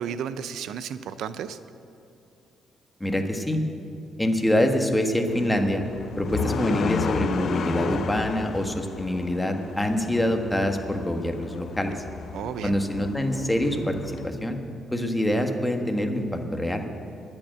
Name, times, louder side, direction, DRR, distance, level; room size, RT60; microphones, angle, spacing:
voice 1, 0.0-1.6 12.3-12.8, right 8 dB, 80° right, 13 dB, 0.4 m, -33 dB
voice 2, 3.0-3.6 4.2-5.8 6.2-12.0 12.6-14.6 14.9-16.8, equal, 10° left, 4 dB, 1.3 m, -25 dB
sound 1, 5.3-14.3, left 6 dB, 60° left, 0.5 m, -33 dB
10.5 x 9.0 x 8.9 m, 2.6 s
cardioid pair, 90°, 0 cm